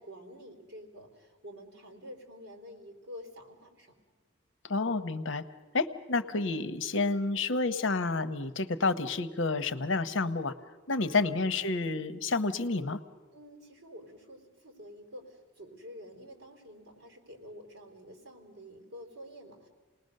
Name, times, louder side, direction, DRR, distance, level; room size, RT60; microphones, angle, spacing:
voice 1, 0.0-3.9 13.3-19.7, equal, 55° right, 2 dB, 3.9 m, -49 dB
voice 2, 4.7-5.4 5.7-10.5 10.9-13.0, left 3 dB, 65° left, 12 dB, 0.9 m, -29 dB
28.0 x 19.5 x 6.6 m, 1.4 s
head